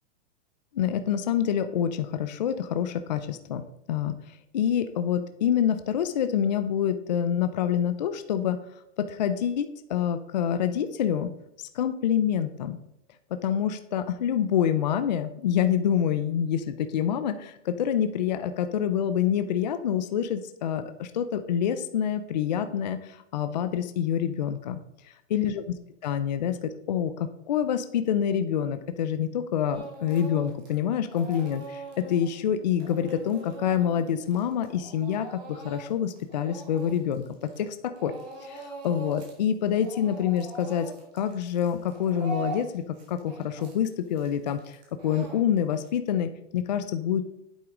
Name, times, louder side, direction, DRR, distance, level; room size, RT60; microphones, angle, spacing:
voice 1, 0.7-3.6 3.9-8.6 9.0-11.3 11.6-12.8 13.4-24.8 25.3-25.6 26.0-37.8 38.0-38.1 38.4-42.8 43.1-44.8 45.0-47.2, left 9 dB, 40° left, 9 dB, 0.5 m, -27 dB
Speech / Crying sobbing, 29.7-30.8 31.1-37.7 38.0-39.4 39.7-45.9, right 2 dB, 35° right, 2.6 m, -42 dB
9.3 x 7.9 x 3.7 m, 0.84 s
supercardioid pair, 180°, 35 cm